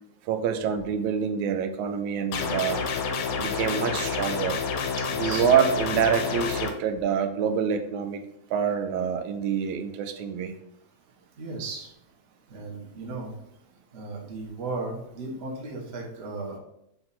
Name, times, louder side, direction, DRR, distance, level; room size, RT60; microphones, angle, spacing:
voice 1, 0.2-2.8 3.4-4.6 5.2-8.2 8.5-10.5, right 7 dB, 90° right, 7 dB, 2.0 m, -26 dB
sound 1, 2.3-6.7, left 5 dB, 80° left, 2.0 m, -29 dB
voice 2, 5.0-5.5 11.4-11.9 12.5-13.3 13.9-16.6, right 3 dB, 55° right, -2 dB, 0.6 m, -35 dB
7.7 x 2.6 x 5.7 m, 0.78 s
omnidirectional pair, 3.3 m